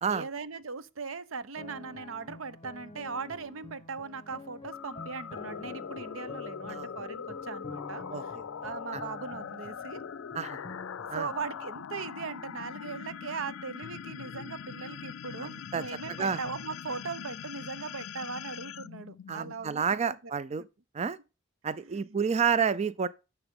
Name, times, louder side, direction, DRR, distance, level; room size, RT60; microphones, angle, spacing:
voice 1, 0.1-8.4 8.6-10.0 11.1-20.3 20.6-20.7 21.7-22.2, right 5 dB, 85° right, 0.8 m, -39 dB
sound 1, 1.6-11.9, left 3 dB, 30° left, 1.0 m, -47 dB
sound 2, 4.7-19.8, left 7 dB, 85° left, 0.4 m, -42 dB
voice 2, 8.1-8.4 8.9-9.0 10.3-10.6 11.1-11.3 15.4-15.8 16.2-16.4 19.3-20.6 20.9-21.2 21.6-23.1, right 6 dB, 35° right, 0.4 m, -30 dB
11.0 x 6.9 x 3.6 m
head